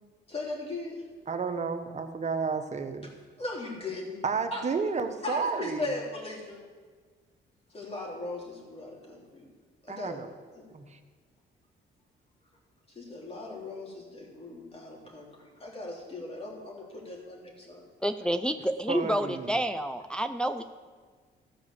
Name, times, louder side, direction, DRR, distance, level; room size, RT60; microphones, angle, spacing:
voice 1, 0.3-1.0 3.4-4.2 4.5-4.6 5.2-6.6 7.7-9.5 9.8-10.2 10.5-10.7 12.9-17.9 19.0-19.1, left 2 dB, 30° left, -2 dB, 3.2 m, -38 dB
voice 2, 1.3-3.1 4.2-5.9 9.9-10.3 10.7-11.0 18.9-19.6, right 5 dB, 35° right, 7 dB, 1.0 m, -31 dB
voice 3, 18.0-20.6, right 1 dB, 5° left, 7 dB, 0.5 m, -29 dB
14.5 x 4.9 x 6.9 m, 1.5 s
cardioid pair, 90°, 20 cm